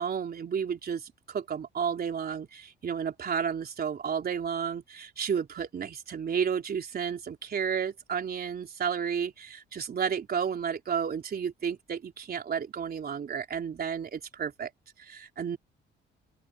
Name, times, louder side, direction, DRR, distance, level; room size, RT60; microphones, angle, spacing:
voice 1, 0.0-14.7 15.0-15.6, right 7 dB, 50° right, 3.9 m, -32 dB
open air
cardioid pair, 90°, 20 cm